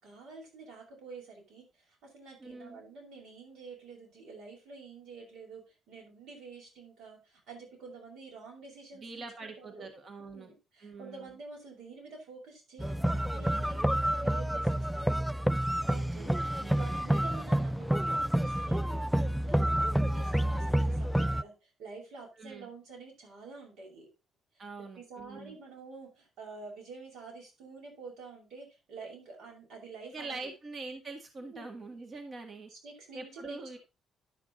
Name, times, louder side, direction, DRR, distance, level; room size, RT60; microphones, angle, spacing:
voice 1, 0.0-9.3 9.6-9.9 10.2-15.2 15.9-16.3 16.7-21.5 21.8-24.1 24.8-30.4 31.4-31.8 32.7-33.8, right 4 dB, 80° right, -1 dB, 6.0 m, -48 dB
voice 2, 2.4-2.8 8.9-10.5 10.8-11.3 15.8-17.1 22.4-22.7 24.6-25.6 30.1-32.7 33.1-33.8, right 3 dB, 45° right, 4 dB, 1.8 m, -44 dB
sound 1, 12.8-21.4, right 1 dB, ahead, 0.4 m, -29 dB
11.5 x 6.0 x 4.1 m, 0.28 s
cardioid pair, 100°, 0 cm